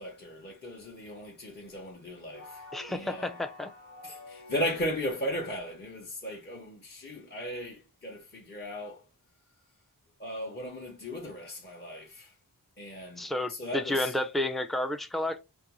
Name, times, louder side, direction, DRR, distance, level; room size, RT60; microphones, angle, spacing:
voice 1, 0.0-2.6 2.9-3.4 4.0-9.0 10.2-12.3 12.8-14.2, equal, 25° left, 0.7 m, -37 dB
sound 1, 2.3-5.2, left 2 dB, 85° left, 1.3 m, -48 dB
voice 2, 2.7-3.7 13.2-15.4, left 1 dB, ahead, 0.4 m, -31 dB
2.5 x 2.2 x 2.9 m
wide cardioid pair, 50°, 38 cm